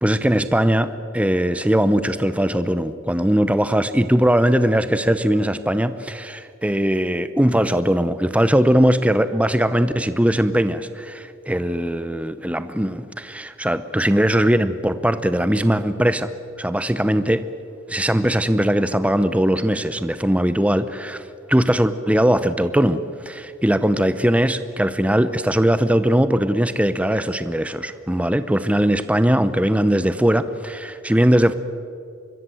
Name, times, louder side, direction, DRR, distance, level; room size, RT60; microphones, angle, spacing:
voice 1, 0.0-16.3 16.6-17.4 17.9-31.5, equal, 5° right, 12 dB, 0.7 m, -20 dB
25.0 x 21.5 x 7.7 m, 2.5 s
head